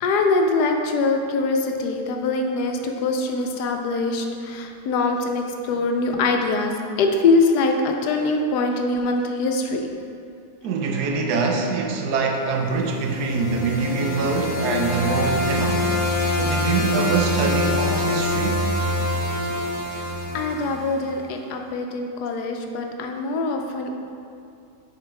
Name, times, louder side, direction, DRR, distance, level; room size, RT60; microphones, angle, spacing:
voice 1, 0.0-6.7 7.0-9.9 19.9-20.0 20.3-23.9, left 3 dB, 80° left, 3 dB, 1.2 m, -23 dB
voice 2, 10.6-15.9 16.4-18.6, right 4 dB, 80° right, 2 dB, 1.2 m, -24 dB
sound 1, 12.8-21.0, left 1 dB, 65° left, 1.4 m, -25 dB
6.7 x 4.3 x 4.6 m, 2.5 s
omnidirectional pair, 1.7 m